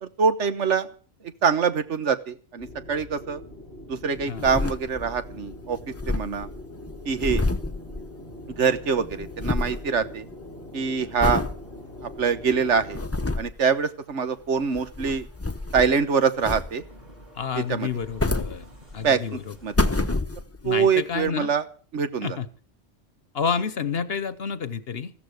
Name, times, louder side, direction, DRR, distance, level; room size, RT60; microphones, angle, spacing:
voice 1, 0.0-0.9 1.4-3.4 3.9-5.8 6.1-6.5 7.0-7.4 8.5-10.3 10.7-11.4 12.0-13.0 13.4-15.3 15.7-16.8 17.5-17.9 19.0-19.7 20.6-21.6 21.9-22.4, right 6 dB, 85° right, 12 dB, 1.5 m, -24 dB
sound 1, 2.6-13.1, left 1 dB, 60° right, 6.6 m, -42 dB
sound 2, 4.1-5.3 5.5-5.6 5.8-8.6 8.9-9.9 10.3-10.6 11.2-11.6 12.1-12.2 12.7-13.6 14.6-16.0 16.4-17.0 17.8-19.1 19.5-20.7 21.3-21.4, left 2 dB, 15° left, 0.8 m, -28 dB
sound 3, 10.9-19.9, equal, 35° right, 5.9 m, -53 dB
voice 2, 17.3-18.7 18.9-19.5 20.6-21.5 22.2-22.5 23.3-25.1, left 6 dB, 60° left, 14 dB, 1.1 m, -29 dB
15.0 x 13.5 x 6.4 m, 0.40 s
omnidirectional pair, 1.2 m